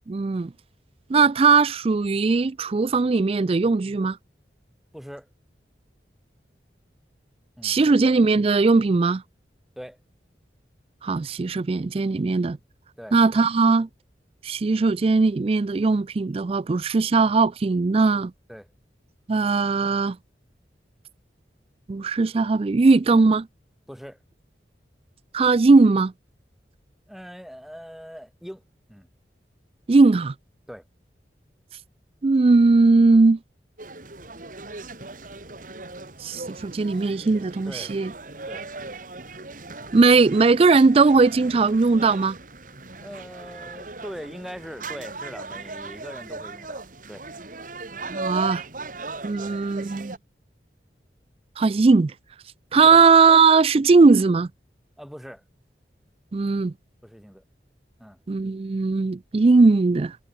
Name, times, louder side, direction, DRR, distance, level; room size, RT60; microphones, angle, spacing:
voice 1, 0.1-0.5 1.1-4.2 7.6-9.2 11.0-12.6 13.1-13.9 14.4-18.3 19.3-20.2 21.9-23.5 25.3-26.1 29.9-30.3 32.2-33.4 36.2-38.1 39.9-42.4 48.1-48.6 49.2-50.2 51.6-52.1 52.7-54.5 56.3-56.7 58.3-60.2, right 4 dB, 35° right, 0.4 m, -19 dB
voice 2, 4.9-5.3 7.6-8.0 9.8-10.0 13.0-13.2 18.5-18.7 23.9-24.2 27.1-28.6 28.9-29.1 30.7-30.8 37.3-37.9 38.5-38.7 43.0-47.3 49.4-49.6 52.8-53.1 55.0-55.4 57.0-57.4 58.0-58.2, equal, ahead, 5.9 m, -41 dB
sound 1, 33.8-50.2, right 3 dB, 50° right, 3.3 m, -38 dB
head